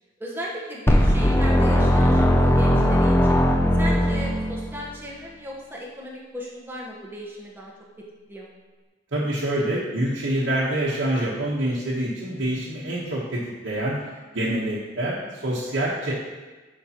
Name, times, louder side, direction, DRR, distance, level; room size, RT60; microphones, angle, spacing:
voice 1, 0.2-3.4 3.8-7.7 8.3-8.5, equal, 10° right, -4 dB, 1.1 m, -36 dB
sound 1, 0.9-4.9, equal, 10° left, 0.4 m, -19 dB
voice 2, 9.1-14.0 14.3-16.1, right 1 dB, 70° right, -8 dB, 1.2 m, -26 dB
9.8 x 5.1 x 3.0 m, 1.2 s
head